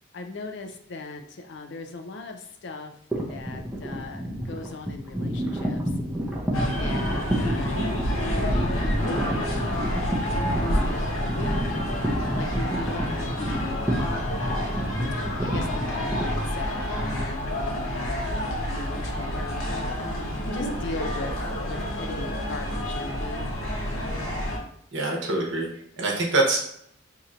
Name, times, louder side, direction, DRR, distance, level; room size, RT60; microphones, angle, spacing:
voice 1, 0.1-6.0 6.7-11.8 12.3-14.5 15.4-20.0 20.5-23.5, left 3 dB, 60° left, 5 dB, 0.4 m, -38 dB
sound 1, 3.1-17.2, equal, 5° right, 0.6 m, -30 dB
sound 2, 6.5-24.6, equal, 85° left, 1.0 m, -29 dB
voice 2, 24.9-25.7 26.0-26.7, right 2 dB, 60° right, -2 dB, 0.9 m, -24 dB
2.8 x 2.5 x 4.3 m, 0.70 s
head